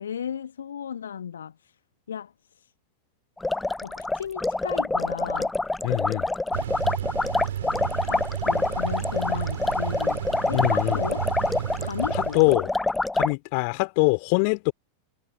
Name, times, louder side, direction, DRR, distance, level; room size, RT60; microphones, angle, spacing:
voice 1, 0.0-1.7 2.1-2.7 3.8-5.5 8.0-10.2 10.5-11.3 11.8-12.5, left 8 dB, 65° left, 1.3 m, -35 dB
sound 1, 3.4-13.3, left 2 dB, 5° left, 0.6 m, -26 dB
voice 2, 5.8-6.3 10.5-11.0 12.1-12.7 13.1-14.7, left 39 dB, 45° left, 3.2 m, -23 dB
sound 2, 6.5-12.5, right 10 dB, 60° right, 5.5 m, -32 dB
figure-of-eight pair, 90°, 0 cm